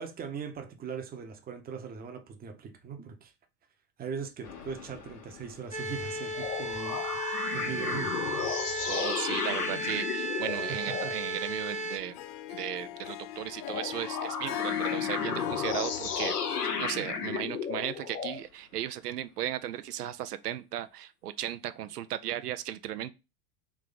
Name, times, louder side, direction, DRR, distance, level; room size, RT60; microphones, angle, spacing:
voice 1, 0.0-3.3 4.0-7.0 7.5-8.1 10.7-11.1, right 6 dB, 20° right, 0.8 m, -40 dB
sound 1, 4.4-6.1 6.3-11.2 13.6-18.4, left 6 dB, 80° left, 1.0 m, -34 dB
sound 2, 5.7-12.0, right 1 dB, 15° left, 0.9 m, -35 dB
voice 2, 8.9-12.2 12.5-23.1, right 11 dB, 85° right, 0.5 m, -36 dB
Harp, 12.0-17.3, left 13 dB, 45° left, 0.5 m, -38 dB
3.6 x 3.1 x 3.9 m
hypercardioid pair, 95°, 46 cm